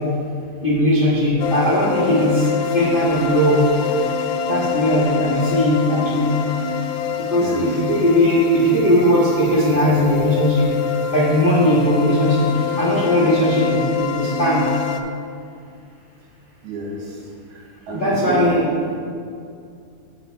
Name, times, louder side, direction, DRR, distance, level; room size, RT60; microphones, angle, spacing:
voice 1, 0.6-2.4 2.7-3.6 4.5-6.3 7.3-10.7 11.1-12.5 12.8-14.6 17.9-18.7, equal, 50° left, -8 dB, 0.6 m, -18 dB
sound 1, 1.4-15.0, left 7 dB, 90° left, 2.0 m, -26 dB
voice 2, 7.3-7.7 16.6-17.2 17.5-18.5, right 1 dB, 75° right, -2 dB, 2.5 m, -29 dB
7.8 x 6.4 x 4.4 m, 2.4 s
omnidirectional pair, 3.5 m